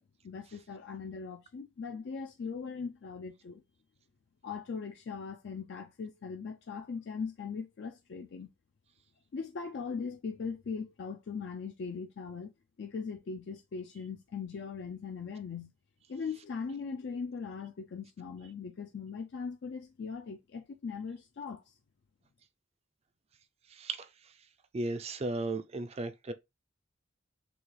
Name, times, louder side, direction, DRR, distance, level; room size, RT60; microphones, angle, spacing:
voice 1, 0.0-3.6 4.4-8.5 9.3-12.5 12.8-15.7 16.1-21.7, left 5 dB, 55° left, 0.4 m, -40 dB
voice 2, 23.7-24.1 24.7-26.3, right 2 dB, 30° right, 0.4 m, -35 dB
6.1 x 2.4 x 3.2 m
head